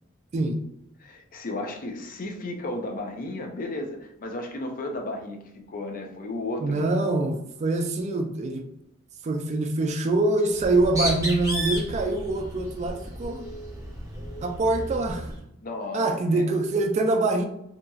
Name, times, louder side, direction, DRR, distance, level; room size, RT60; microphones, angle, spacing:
voice 1, 1.0-5.4 5.7-7.0 15.6-16.5, left 2 dB, 45° left, 4 dB, 0.5 m, -34 dB
voice 2, 6.6-8.7 9.2-13.4 14.4-15.3 15.9-17.5, right 2 dB, 35° right, 5 dB, 0.3 m, -24 dB
Bird, 10.6-15.4, equal, 15° right, 0.7 m, -33 dB
2.8 x 2.6 x 2.2 m, 0.76 s
head